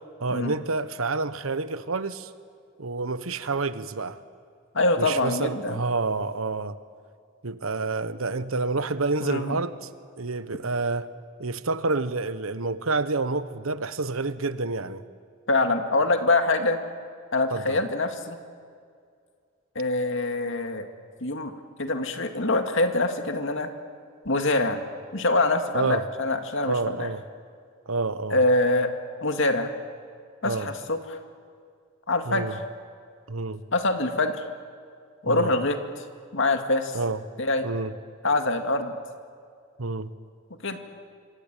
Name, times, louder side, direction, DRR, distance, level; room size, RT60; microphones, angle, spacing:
voice 1, 0.2-2.3 2.8-4.2 5.0-6.8 7.4-9.9 10.2-11.1 11.4-15.0 17.5-17.8 25.7-26.1 26.6-27.2 27.9-28.4 30.4-30.7 32.3-32.6 33.3-33.6 35.2-35.5 36.9-37.2 37.6-37.9 39.8-40.1, right 3 dB, 80° right, 13 dB, 1.2 m, -28 dB
voice 2, 4.7-5.8 9.2-9.6 15.5-16.8 17.3-18.4 19.8-20.9 21.2-21.5 21.8-23.7 24.3-24.8 25.1-27.1 28.3-28.9 29.2-29.7 30.4-31.2 32.1-32.5 33.7-34.4 35.2-35.8 36.3-37.0 37.4-37.6 38.2-38.9 40.6-40.8, left 2 dB, 65° left, 6 dB, 2.3 m, -24 dB
26.5 x 24.0 x 9.1 m, 2.2 s
head